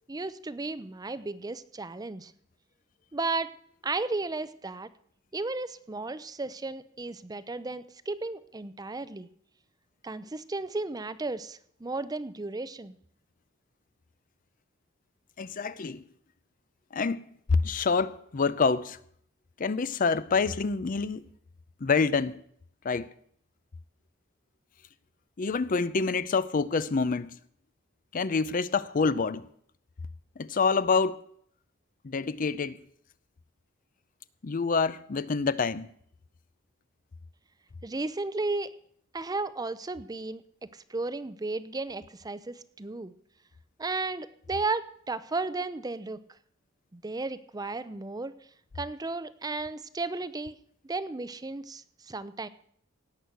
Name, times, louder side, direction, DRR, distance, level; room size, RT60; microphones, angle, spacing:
voice 1, 0.1-2.3 3.1-3.5 3.8-4.9 5.3-9.3 10.0-13.0 37.8-38.7 39.1-40.4 40.7-43.1 43.8-46.2 46.9-48.3 48.8-50.6 50.8-52.5, right 3 dB, 20° right, 0.5 m, -34 dB
voice 2, 15.4-16.0 16.9-19.0 19.6-21.2 21.8-22.4 22.8-23.1 25.4-27.4 28.1-29.5 30.4-31.2 32.0-32.8 34.4-35.9, left 4 dB, 45° left, 0.5 m, -27 dB
17.5 x 6.2 x 8.1 m
head